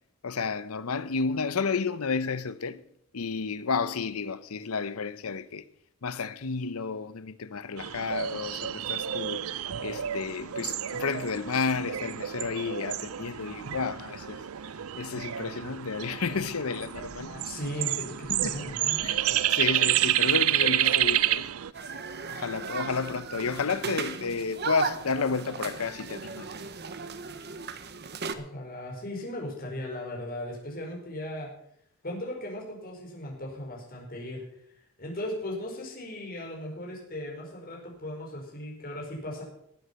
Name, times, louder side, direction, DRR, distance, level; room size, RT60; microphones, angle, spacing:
voice 1, 0.2-2.8 3.1-5.6 6.0-14.4 15.0-17.3 18.3-18.6 19.0-21.5 21.8-22.0 22.3-26.5, left 5 dB, 85° left, 0.8 m, -31 dB
sound 1, 7.8-21.7, right 12 dB, 75° right, 0.5 m, -29 dB
voice 2, 17.2-19.0 28.3-31.5 32.0-34.4 35.0-39.4, left 1 dB, 45° left, 4.9 m, -37 dB
sound 2, 21.7-28.3, right 5 dB, 50° right, 1.0 m, -36 dB
19.0 x 8.2 x 5.8 m
head